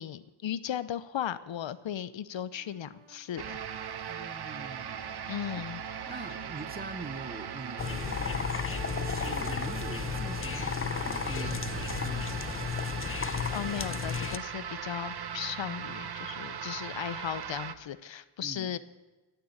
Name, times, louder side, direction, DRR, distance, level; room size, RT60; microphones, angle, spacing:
voice 1, 0.0-3.6 5.3-5.8 13.5-18.8, left 10 dB, 70° left, 16 dB, 0.7 m, -36 dB
sound 1, 2.5-11.3, right 13 dB, 85° right, 0.7 m, -51 dB
sound 2, 3.4-17.7, right 8 dB, 55° right, 0.9 m, -39 dB
voice 2, 4.0-5.1 6.1-12.5 18.4-18.8, right 3 dB, 20° right, 11 dB, 0.9 m, -44 dB
sound 3, 7.8-14.4, left 7 dB, 30° left, 0.5 m, -33 dB
16.0 x 6.8 x 9.3 m, 1.2 s
wide cardioid pair, 85°, 47 cm